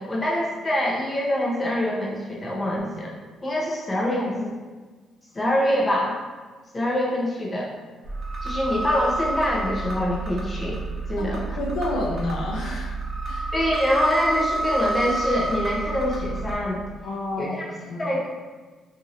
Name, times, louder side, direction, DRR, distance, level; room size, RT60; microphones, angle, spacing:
voice 1, 0.0-3.1 3.4-4.6 5.3-6.1 6.7-7.7 8.4-10.8 11.1-11.4 13.5-16.8 17.4-17.6 18.0-18.3, left 1 dB, 25° left, -4 dB, 0.7 m, -25 dB
sound 1, 8.0-16.6, right 2 dB, 45° right, 0.8 m, -29 dB
voice 2, 11.6-13.0 13.2-13.5 17.0-18.1, left 2 dB, 85° left, -4 dB, 0.6 m, -30 dB
2.8 x 2.7 x 2.5 m, 1.4 s
cardioid pair, 80°, 0 cm